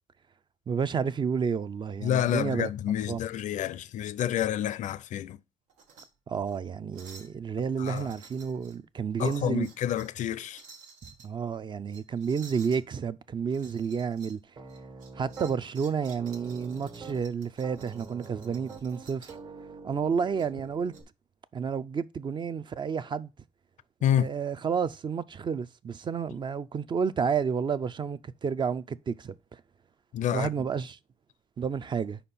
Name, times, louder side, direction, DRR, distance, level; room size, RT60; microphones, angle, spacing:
voice 1, 0.7-2.7 3.1-3.2 6.3-9.7 11.0-14.4 15.1-19.3 19.8-20.9 21.5-23.3 24.2-29.3 30.3-31.0 31.6-32.2, right 6 dB, 35° right, 0.4 m, -30 dB
voice 2, 2.0-5.4 7.8-8.1 9.2-10.6 24.0-24.3 30.1-30.5, left 10 dB, 65° left, 0.4 m, -28 dB
sound 1, 5.7-6.1 6.4-6.6 6.9-7.4 7.8-8.8 9.2-10.2 10.5-11.3 11.9-12.8 13.5-14.4 14.7-19.5 20.4-21.0, right 5 dB, 90° right, 1.1 m, -53 dB
Piano, 14.6-15.5 16.0-17.3 17.6-21.0, right 4 dB, 55° right, 1.6 m, -45 dB
4.9 x 4.3 x 5.3 m
cardioid pair, 85°, 13 cm